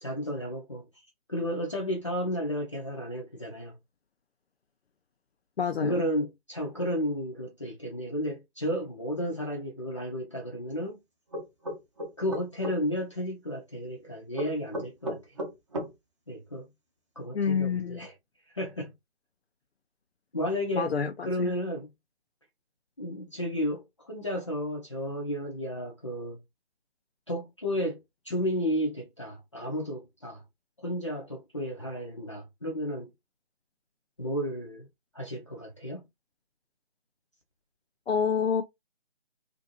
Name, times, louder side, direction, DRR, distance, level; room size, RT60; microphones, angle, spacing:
voice 1, 0.0-0.9 1.3-3.8 5.8-11.0 12.2-15.3 16.3-16.7 17.2-18.1 18.5-18.9 20.3-20.9 21.2-21.9 23.0-26.4 27.3-30.4 30.8-33.1 34.2-34.9 35.1-36.0, equal, 30° left, 0.5 m, -32 dB
voice 2, 5.6-6.0 17.3-18.1 20.7-21.5 38.1-38.6, left 6 dB, 85° left, 0.5 m, -28 dB
sound 1, 11.3-12.8 14.3-15.9, equal, 30° right, 0.7 m, -34 dB
2.5 x 2.5 x 2.7 m
figure-of-eight pair, 155°, 31 cm